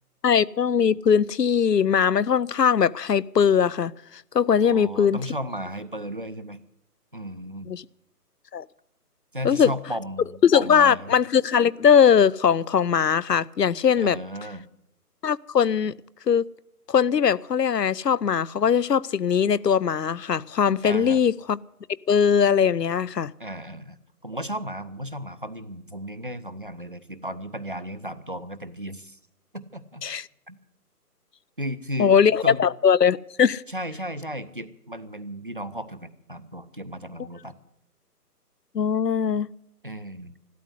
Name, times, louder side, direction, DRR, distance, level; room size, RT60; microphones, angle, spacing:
voice 1, 0.2-3.9 4.3-5.2 7.7-7.8 8.5-8.6 9.4-9.7 10.4-14.2 15.2-15.9 16.3-16.5 16.9-21.6 22.1-23.3 30.0-30.2 32.0-33.6 38.7-39.5, left 7 dB, 85° left, 0.6 m, -20 dB
voice 2, 4.6-6.6 7.1-7.7 9.3-11.2 14.0-14.7 20.8-21.2 23.4-29.2 29.5-30.0 30.5-30.6 31.6-32.1 32.4-32.7 33.7-37.6 39.8-40.3, equal, 35° right, 0.6 m, -35 dB
12.5 x 12.5 x 8.1 m
figure-of-eight pair, 150°, 48 cm